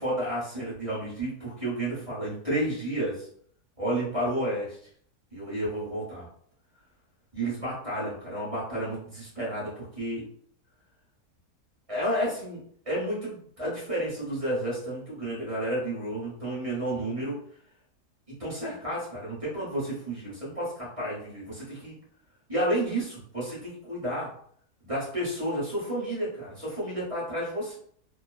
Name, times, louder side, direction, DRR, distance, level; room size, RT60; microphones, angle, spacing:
voice 1, 0.0-3.3 3.8-4.8 5.3-6.3 7.3-10.2 11.9-17.4 18.4-22.0 22.5-24.3 24.8-27.8, right 1 dB, 25° right, -7 dB, 0.9 m, -31 dB
2.7 x 2.2 x 2.4 m, 0.62 s
omnidirectional pair, 1.8 m